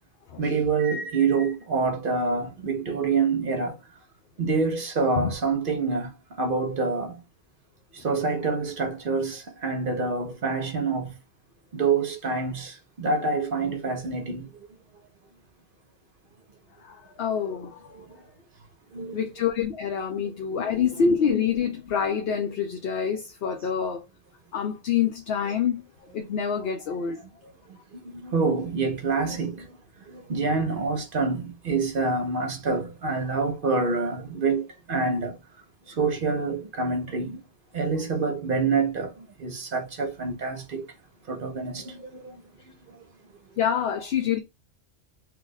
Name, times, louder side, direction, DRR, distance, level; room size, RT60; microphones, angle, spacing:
voice 1, 0.4-3.8 4.4-7.2 7.9-11.1 11.7-14.5 17.9-18.2 18.9-19.3 20.1-20.2 20.6-20.7 27.9-29.7 30.1-35.4 35.9-37.4 37.7-40.9 41.3-42.4, right 4 dB, 55° right, 0.8 m, -27 dB
voice 2, 16.8-18.0 19.1-24.1 24.5-25.8 26.1-27.2 43.6-44.4, left 7 dB, 65° left, 0.8 m, -26 dB
2.9 x 2.4 x 3.9 m
omnidirectional pair, 1.1 m